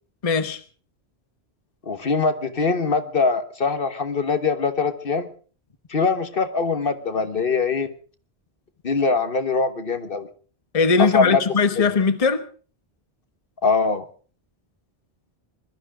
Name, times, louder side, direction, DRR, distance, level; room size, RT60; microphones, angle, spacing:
voice 1, 0.2-0.6 10.7-12.4, left 5 dB, 35° left, 10 dB, 1.1 m, -20 dB
voice 2, 1.8-5.3 5.9-7.9 8.8-10.3 11.0-11.4 13.6-14.0, left 4 dB, 55° left, 10 dB, 1.4 m, -22 dB
21.0 x 13.0 x 4.9 m, 0.40 s
omnidirectional pair, 1.1 m